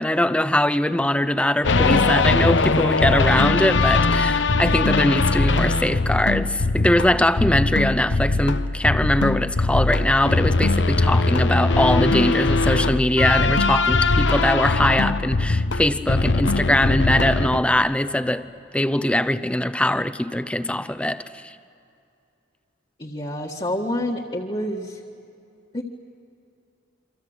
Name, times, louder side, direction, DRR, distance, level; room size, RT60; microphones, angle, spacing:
voice 1, 0.0-18.5 18.7-21.5, left 1 dB, 5° left, 0.7 m, -21 dB
sound 1, 1.6-17.6, left 3 dB, 70° left, 0.9 m, -21 dB
voice 2, 23.0-25.0 25.7-25.8, left 1 dB, 30° left, 1.6 m, -28 dB
28.5 x 25.0 x 8.1 m
head